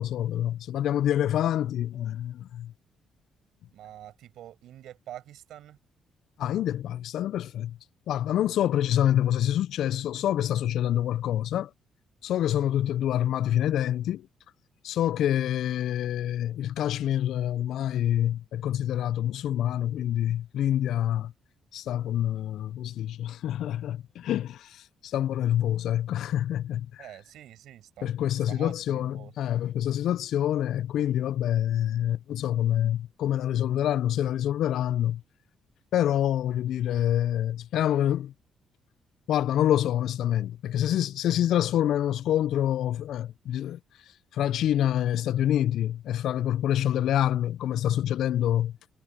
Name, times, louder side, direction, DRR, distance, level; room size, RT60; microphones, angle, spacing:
voice 1, 0.0-2.7 6.4-7.8 8.1-11.7 12.2-14.3 14.8-21.3 21.7-27.1 28.0-35.2 35.9-38.3 39.3-43.8 44.3-48.8, left 11 dB, 75° left, 0.3 m, -26 dB
voice 2, 3.7-5.8 27.0-28.1 28.5-29.3, right 12 dB, 80° right, 5.8 m, -45 dB
cardioid pair, 90°, 0 cm